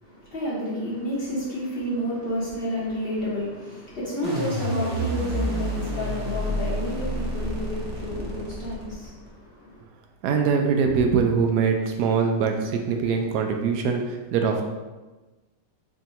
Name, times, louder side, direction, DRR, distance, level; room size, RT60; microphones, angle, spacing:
voice 1, 0.0-9.8, equal, 40° left, -7 dB, 0.9 m, -30 dB
sound 1, 4.2-9.3, right 1 dB, 35° right, 0.6 m, -29 dB
voice 2, 10.2-14.6, right 5 dB, 75° right, 3 dB, 1.1 m, -23 dB
3.6 x 2.6 x 4.2 m, 1.2 s
omnidirectional pair, 1.8 m